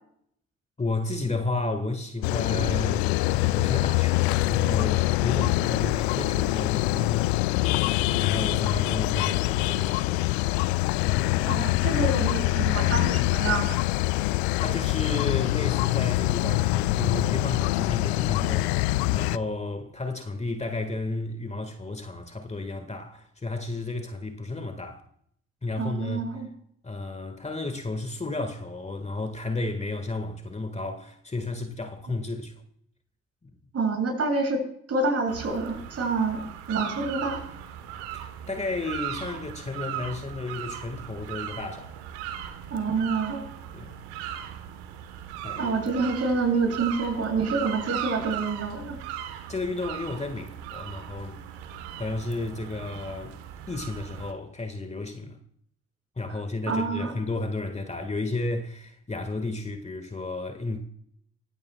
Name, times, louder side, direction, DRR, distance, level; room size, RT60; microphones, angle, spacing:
voice 1, 0.8-7.7 8.0-10.3 11.1-11.6 14.5-25.0 25.6-26.4 26.8-32.5 33.4-33.5 38.1-42.0 43.7-43.9 45.4-45.7 49.5-51.4 52.0-53.4 53.7-55.4 56.2-60.8, left 2 dB, 20° left, 1.8 m, -33 dB
sound 1, 2.2-19.4, left 19 dB, 70° left, 0.5 m, -24 dB
voice 2, 11.5-13.8 25.8-26.5 33.7-34.6 34.9-36.4 36.7-37.4 42.7-43.4 45.6-49.0 56.7-57.1, right 3 dB, 45° right, 7.6 m, -27 dB
sound 2, 35.3-54.3, right 10 dB, 75° right, 1.3 m, -38 dB
25.5 x 16.0 x 2.4 m
figure-of-eight pair, 45°, 33 cm